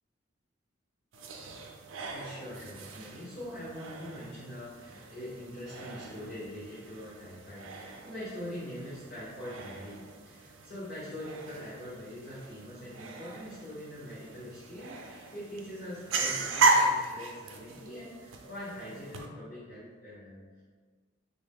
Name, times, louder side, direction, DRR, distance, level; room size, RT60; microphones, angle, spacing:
sound 1, 1.1-19.3, right 2 dB, 85° right, 0.4 m, -35 dB
voice 1, 1.8-20.6, equal, 55° left, -11 dB, 1.1 m, -43 dB
3.8 x 2.2 x 3.4 m, 1.4 s
head